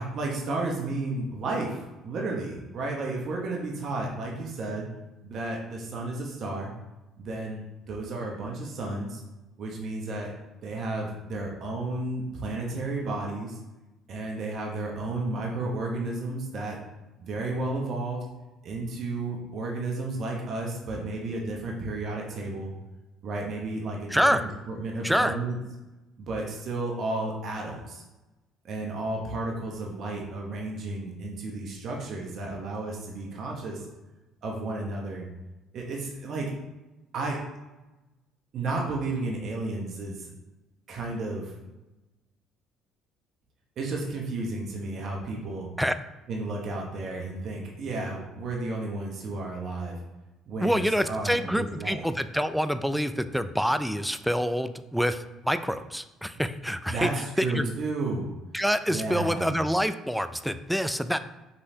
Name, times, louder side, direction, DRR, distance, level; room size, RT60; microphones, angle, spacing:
voice 1, 0.0-4.9 5.2-6.7 7.2-9.2 9.6-10.3 10.6-13.6 14.1-16.8 17.2-18.2 18.6-22.7 23.2-25.6 26.2-28.0 28.6-33.8 34.4-35.3 35.7-36.5 37.1-37.4 38.5-40.3 40.9-41.5 43.8-45.7 46.3-50.0 50.5-52.0 56.9-58.3 58.9-59.5, right 2 dB, 60° right, -1 dB, 0.9 m, -32 dB
voice 2, 24.1-24.4 25.0-25.3 45.8-46.0 50.6-57.1 57.4-57.7 58.5-61.2, equal, ahead, 11 dB, 0.3 m, -26 dB
5.5 x 3.2 x 2.8 m, 1.1 s
supercardioid pair, 75°, 0 cm